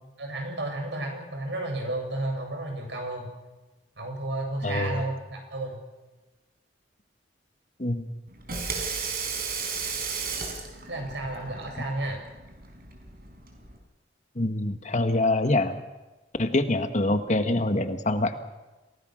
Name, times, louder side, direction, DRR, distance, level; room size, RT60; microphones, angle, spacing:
voice 1, 0.2-3.3 4.0-5.8 10.9-12.2, right 2 dB, 85° right, 2 dB, 7.8 m, -32 dB
voice 2, 4.6-5.0 7.8-8.1 14.4-15.8 16.4-18.4, left 2 dB, 45° left, 8 dB, 1.6 m, -25 dB
Water tap faucet / Sink (filling or washing), 8.3-13.8, right 5 dB, 60° right, 4.7 m, -34 dB
28.0 x 18.0 x 6.4 m, 1.1 s
head